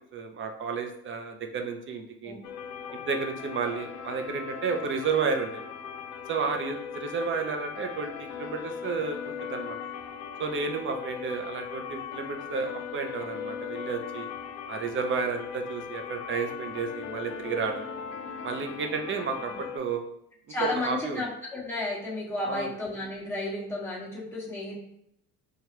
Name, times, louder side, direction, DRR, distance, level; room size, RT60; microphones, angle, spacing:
voice 1, 0.1-2.4 2.9-5.6 6.3-9.8 10.4-14.3 14.7-17.8 18.4-20.0 20.6-21.2 22.4-22.7, right 5 dB, 35° right, 5 dB, 0.6 m, -32 dB
sound 1, 2.4-19.8, left 7 dB, 50° left, 0.5 m, -39 dB
voice 2, 20.5-24.8, left 2 dB, 5° left, -6 dB, 1.3 m, -32 dB
4.7 x 2.3 x 2.9 m, 0.76 s
cardioid pair, 120°, 35 cm